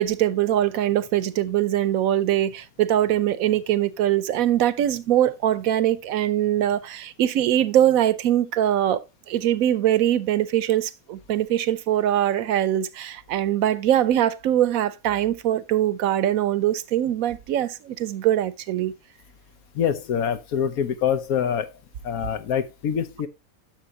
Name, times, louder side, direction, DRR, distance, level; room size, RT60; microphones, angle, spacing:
voice 1, 0.0-9.0 9.3-18.9, right 12 dB, 75° right, 1.1 m, -22 dB
voice 2, 19.7-21.7 22.0-23.3, left 8 dB, 90° left, 1.4 m, -25 dB
10.5 x 6.5 x 2.8 m
omnidirectional pair, 1.5 m